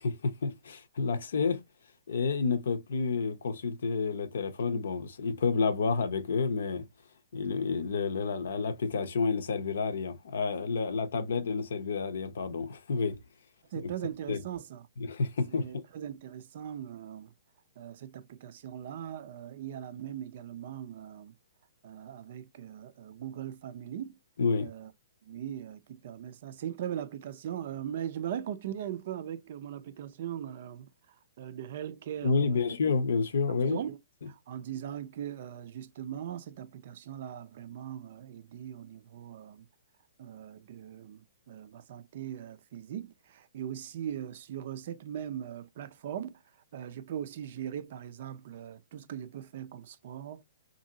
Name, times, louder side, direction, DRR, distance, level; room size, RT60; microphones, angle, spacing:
voice 1, 0.0-1.6 2.1-6.8 7.3-13.2 13.7-13.9 14.3-14.4 15.0-15.8 24.4-24.7 32.2-33.8, left 4 dB, 75° left, 0.6 m, -30 dB
voice 2, 13.7-14.9 15.5-17.3 17.8-21.3 21.8-24.2 24.6-24.9 25.2-30.9 31.4-32.6 33.5-34.0 34.3-39.7 40.2-46.4 46.7-50.4, right 10 dB, 55° right, 0.4 m, -40 dB
2.8 x 2.6 x 2.6 m
hypercardioid pair, 140°, 0 cm